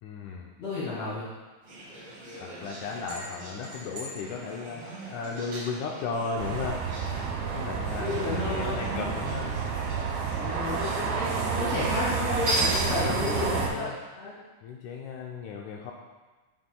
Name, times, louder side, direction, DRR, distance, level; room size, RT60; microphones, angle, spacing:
voice 1, 0.0-0.5 2.3-6.9 7.5-9.6 12.8-14.0 14.6-15.9, left 5 dB, 90° left, 0 dB, 1.7 m, -35 dB
voice 2, 0.6-1.3 8.0-8.8 10.3-14.3, left 3 dB, 50° left, -9 dB, 3.1 m, -32 dB
sound 1, 1.6-13.5, right 1 dB, 50° right, 2.3 m, -37 dB
sound 2, 6.4-13.7, right 6 dB, 80° right, 2.7 m, -30 dB
sound 3, 7.0-12.3, right 2 dB, 10° right, 1.3 m, -42 dB
10.5 x 5.7 x 2.2 m, 1.2 s
omnidirectional pair, 4.1 m